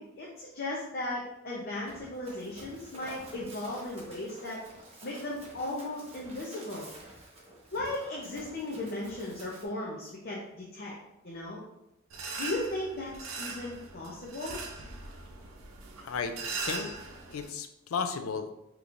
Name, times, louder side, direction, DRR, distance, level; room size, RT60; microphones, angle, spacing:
voice 1, 0.0-4.6 5.0-6.9 7.7-10.9 11.2-11.6 12.4-14.6, left 1 dB, 45° left, -3 dB, 0.6 m, -36 dB
Run, 1.8-9.7, right 1 dB, 30° right, 1.0 m, -50 dB
sound 1, 12.1-17.5, right 4 dB, 90° right, 0.6 m, -40 dB
voice 2, 16.0-16.3 16.6-16.9 17.3-18.6, left 5 dB, 90° left, 7 dB, 0.4 m, -34 dB
5.2 x 2.9 x 2.5 m, 0.88 s
head